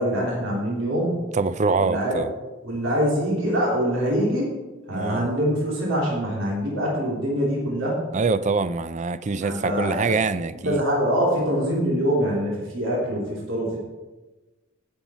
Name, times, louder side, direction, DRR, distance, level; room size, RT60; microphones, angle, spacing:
voice 1, 0.0-1.3 1.8-2.2 2.6-4.5 4.9-8.0 9.4-10.1 10.6-13.8, equal, 75° right, 3.0 m, -24 dB
voice 2, 1.3-2.3 4.9-5.3 8.1-10.8, right 4 dB, 35° right, 0.5 m, -24 dB
16.5 x 7.2 x 4.3 m
head